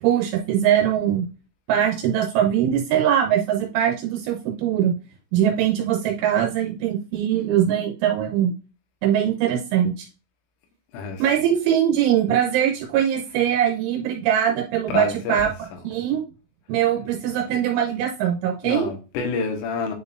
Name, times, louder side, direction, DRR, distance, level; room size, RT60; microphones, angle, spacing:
voice 1, 0.0-1.2 1.7-4.9 5.3-8.5 9.0-10.1 11.2-15.5 15.8-16.2 16.7-18.9, right 10 dB, 80° right, 3.3 m, -21 dB
voice 2, 10.9-11.5 14.9-16.0 18.6-19.9, left 5 dB, 90° left, 3.9 m, -29 dB
10.0 x 4.3 x 2.5 m
omnidirectional pair, 5.6 m